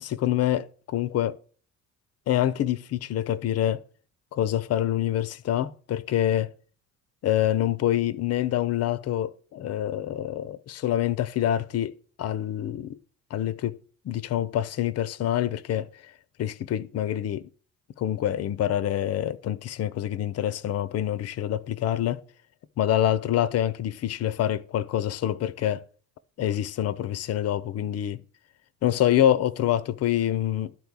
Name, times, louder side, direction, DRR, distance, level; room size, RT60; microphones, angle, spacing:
voice 1, 0.0-1.4 2.3-3.8 4.3-6.5 7.2-13.0 13.3-13.8 14.0-15.9 16.4-17.5 18.0-22.2 22.8-25.8 26.4-28.2 28.8-30.7, left 11 dB, 35° left, 0.7 m, -26 dB
12.0 x 4.6 x 6.6 m
figure-of-eight pair, 50°, 41 cm